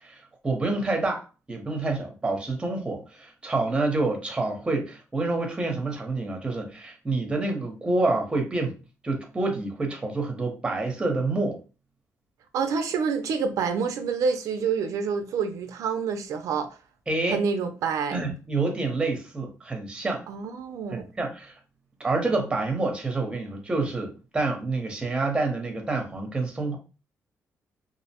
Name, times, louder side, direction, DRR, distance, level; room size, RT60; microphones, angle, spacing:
voice 1, 0.0-8.8 9.0-11.6 17.1-17.4 18.1-20.2 20.9-21.5 22.0-26.8, right 3 dB, 15° right, 0.7 m, -28 dB
voice 2, 12.5-16.8 17.3-18.2 20.3-21.1, right 5 dB, 80° right, 0.4 m, -27 dB
2.5 x 2.0 x 2.8 m
cardioid pair, 125°, 5 cm